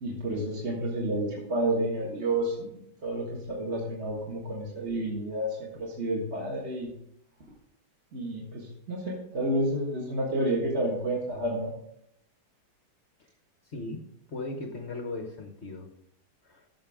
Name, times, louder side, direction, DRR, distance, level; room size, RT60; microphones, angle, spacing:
voice 1, 0.0-6.9 8.1-11.7, right 1 dB, 35° right, -3 dB, 1.8 m, -30 dB
voice 2, 13.7-14.0 14.3-15.9 16.4-16.7, left 2 dB, 45° left, 4 dB, 1.0 m, -37 dB
15.0 x 6.2 x 3.6 m, 0.76 s
omnidirectional pair, 2.2 m